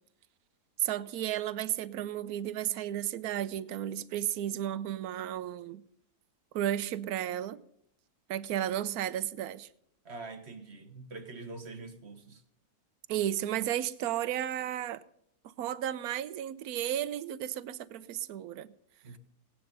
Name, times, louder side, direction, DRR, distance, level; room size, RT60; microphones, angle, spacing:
voice 1, 0.8-5.8 6.5-7.6 8.3-9.7 13.1-15.0 15.6-18.7, right 11 dB, 70° right, 1.2 m, -33 dB
voice 2, 10.0-12.4 19.0-19.2, right 3 dB, 45° right, 1.7 m, -44 dB
17.5 x 10.5 x 5.4 m
omnidirectional pair, 1.7 m